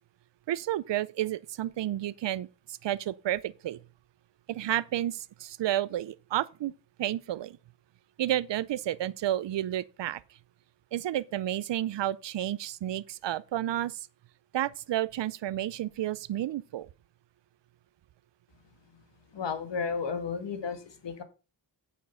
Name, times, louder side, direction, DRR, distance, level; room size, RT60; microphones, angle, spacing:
voice 1, 0.5-2.5 2.8-3.8 4.5-6.7 7.0-7.6 8.2-10.2 10.9-14.1 14.5-16.9, right 13 dB, 80° right, 0.6 m, -31 dB
voice 2, 19.3-21.2, left 5 dB, 80° left, 1.8 m, -33 dB
8.7 x 7.3 x 5.5 m
wide cardioid pair, 85°, 42 cm